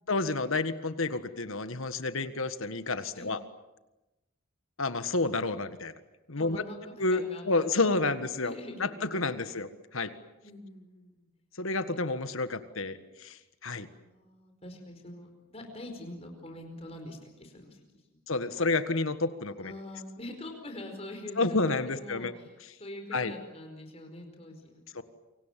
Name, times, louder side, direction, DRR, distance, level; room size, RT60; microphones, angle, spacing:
voice 1, 0.1-3.4 4.8-5.9 6.3-6.6 7.0-8.5 8.8-10.1 11.6-13.9 18.3-19.7 21.4-22.3 23.1-23.3 24.9-25.0, left 3 dB, 75° left, 11 dB, 1.6 m, -30 dB
voice 2, 6.4-8.2 8.4-9.5 10.4-11.3 13.9-17.8 18.3-18.6 19.5-25.0, left 1 dB, 30° left, 4 dB, 4.9 m, -45 dB
28.5 x 25.0 x 7.6 m, 1.0 s
head